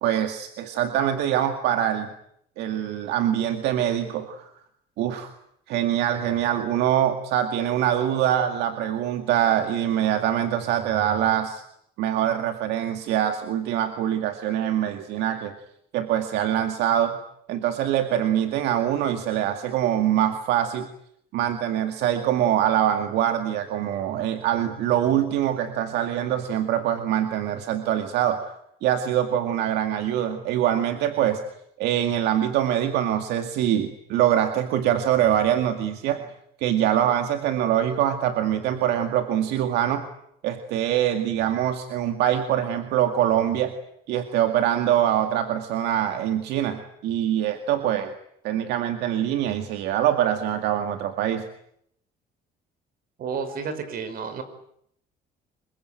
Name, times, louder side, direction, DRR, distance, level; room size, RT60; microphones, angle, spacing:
voice 1, 0.0-2.1 2.6-4.5 5.0-5.3 5.7-11.6 12.0-15.5 15.9-17.2 17.5-20.9 21.3-31.4 31.8-36.2 36.6-40.0 40.4-43.7 44.1-48.1 48.4-51.5, right 10 dB, 85° right, 7 dB, 2.2 m, -24 dB
voice 2, 53.2-54.4, right 5 dB, 60° right, 11 dB, 5.8 m, -31 dB
26.0 x 23.0 x 9.2 m, 0.72 s
cardioid pair, 110°, 17 cm